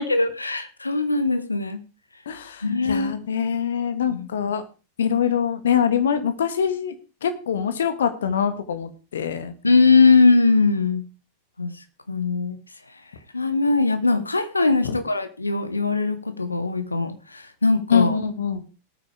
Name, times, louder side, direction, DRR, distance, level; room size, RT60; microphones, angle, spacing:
voice 1, 0.0-1.8 2.6-3.2 4.1-4.3 9.6-11.0 11.6-11.7 12.1-12.6 13.3-17.1 17.6-18.2, left 3 dB, 80° left, 11 dB, 1.3 m, -20 dB
voice 2, 2.3-4.6 5.0-6.9 7.2-9.5 14.8-15.0 17.9-18.6, left 7 dB, 65° left, 10 dB, 1.6 m, -24 dB
18.5 x 8.8 x 3.4 m, 0.32 s
figure-of-eight pair, 90°, 0 cm